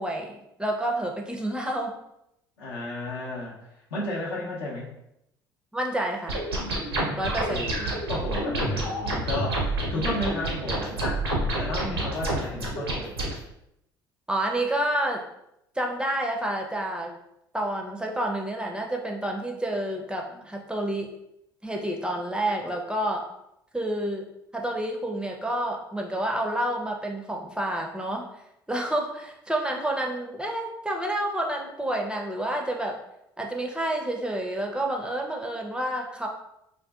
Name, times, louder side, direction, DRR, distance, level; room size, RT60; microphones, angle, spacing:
voice 1, 0.0-1.9 5.7-6.4 7.2-7.7 11.8-12.1 14.3-15.2 15.8-17.1 17.5-21.1 21.6-23.3 23.7-24.3 24.5-28.3 28.7-33.0 33.4-36.3, right 1 dB, 5° right, 1 dB, 0.4 m, -29 dB
voice 2, 2.6-3.5 3.9-4.9 7.1-13.1 20.3-20.4, left 1 dB, 80° left, -3 dB, 0.6 m, -33 dB
sound 1, 6.3-13.3, right 1 dB, 85° right, 0.6 m, -28 dB
2.5 x 2.3 x 2.2 m, 0.81 s
hypercardioid pair, 60°, 12 cm